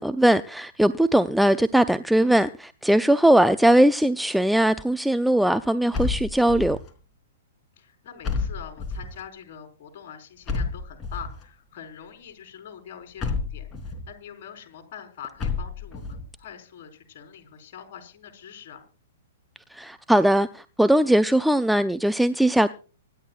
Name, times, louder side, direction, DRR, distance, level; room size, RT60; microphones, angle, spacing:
voice 1, 0.0-6.8 19.7-22.7, right 1 dB, ahead, 0.5 m, -20 dB
sound 1, 5.9-6.9 8.2-9.2 10.5-11.4 13.2-14.1 15.4-16.2, left 4 dB, 20° left, 3.6 m, -30 dB
voice 2, 7.8-18.9, left 8 dB, 50° left, 4.6 m, -44 dB
25.5 x 11.0 x 2.5 m
figure-of-eight pair, 115°, 0 cm